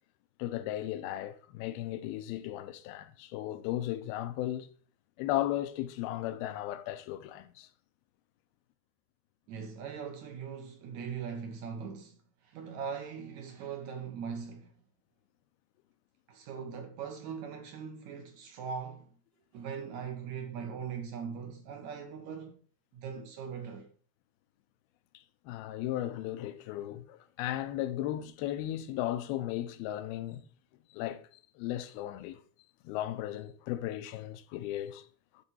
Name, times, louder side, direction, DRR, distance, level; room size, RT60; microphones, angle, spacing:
voice 1, 0.4-4.7 5.2-7.7 25.1-30.4 30.9-31.3 31.6-32.4 32.8-35.1, left 13 dB, 85° left, 2.5 m, -36 dB
voice 2, 9.5-12.2 12.4-14.7 16.3-19.1 19.5-22.6 22.9-23.9, right 6 dB, 70° right, 1.7 m, -40 dB
12.0 x 4.4 x 4.2 m
omnidirectional pair, 4.5 m